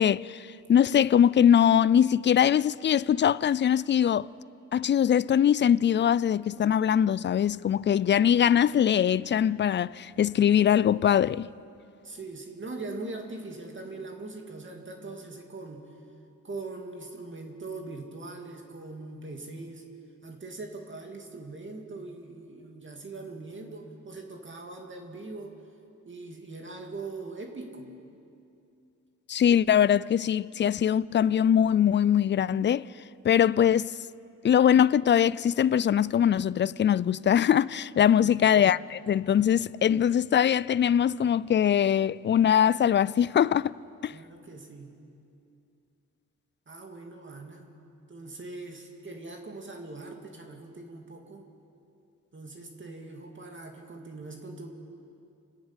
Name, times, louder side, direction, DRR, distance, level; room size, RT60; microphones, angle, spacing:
voice 1, 0.0-4.3 4.7-11.5 29.3-32.9 33.2-33.9 34.4-43.7 44.0-44.1, left 9 dB, 35° left, 0.4 m, -22 dB
voice 2, 12.0-15.9 16.4-19.9 20.2-25.6 26.0-28.0 38.2-38.6 44.1-45.0 46.7-47.8 48.1-51.4 52.3-54.7, right 3 dB, 40° right, 2.5 m, -41 dB
29.0 x 10.5 x 8.9 m
cardioid pair, 80°, 32 cm